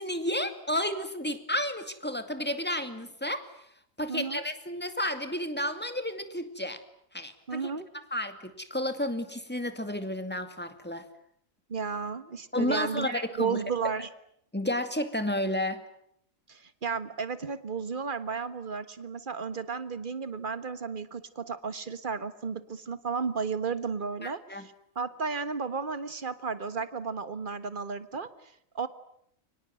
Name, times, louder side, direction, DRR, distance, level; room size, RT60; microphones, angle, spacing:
voice 1, 0.0-3.5 4.0-6.8 7.1-7.7 8.1-11.1 12.5-13.6 14.5-15.8 24.2-24.7, left 1 dB, 5° left, 8 dB, 2.3 m, -31 dB
voice 2, 4.1-4.4 7.5-7.9 11.7-14.1 16.5-28.9, right 5 dB, 40° right, 12 dB, 1.6 m, -33 dB
30.0 x 24.5 x 7.8 m, 0.70 s
omnidirectional pair, 1.4 m